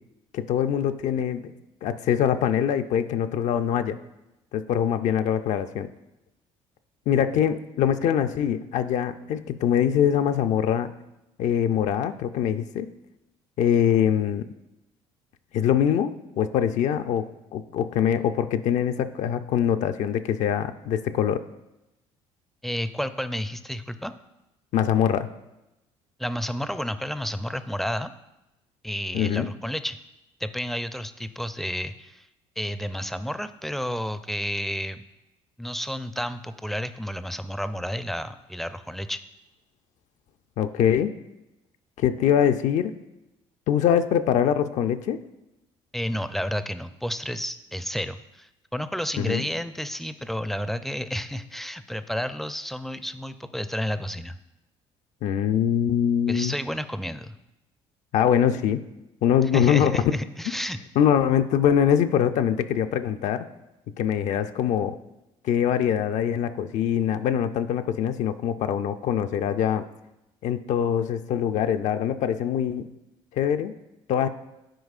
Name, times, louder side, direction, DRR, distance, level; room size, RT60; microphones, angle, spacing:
voice 1, 0.3-1.5 1.8-4.0 4.5-5.9 7.1-10.9 11.4-12.9 13.6-14.5 15.5-17.3 17.5-21.4 24.7-25.3 29.1-29.5 40.6-41.1 42.0-42.9 43.7-45.2 49.2-49.4 55.2-56.5 58.1-58.8 59.2-60.0 61.0-63.5 64.0-65.0 65.4-69.8 70.4-72.8 73.3-73.7 74.1-74.3, left 9 dB, 65° left, 8 dB, 0.4 m, -23 dB
voice 2, 22.6-24.1 26.2-28.1 28.8-30.0 30.4-32.3 32.6-35.0 35.6-39.2 45.9-54.4 56.3-57.3 59.5-60.8, equal, ahead, 11 dB, 0.4 m, -31 dB
11.5 x 4.7 x 2.4 m, 0.94 s
supercardioid pair, 70°, 13 cm